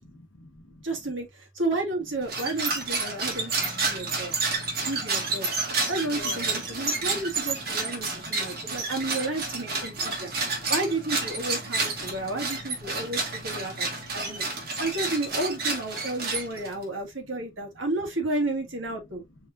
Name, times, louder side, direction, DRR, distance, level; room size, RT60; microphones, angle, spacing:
voice 1, 0.0-0.8 2.9-4.9 6.1-6.7 7.0-7.2 7.6-7.8 8.1-9.1 9.9-10.7 12.0-12.1 12.6-13.1 13.6-14.8, left 2 dB, 90° left, 1.2 m, -49 dB
voice 2, 0.8-4.4 4.8-19.2, right 2 dB, 80° right, 1.9 m, -32 dB
sound 1, 2.2-16.8, right 3 dB, 50° right, 1.7 m, -30 dB
5.5 x 3.2 x 2.5 m
head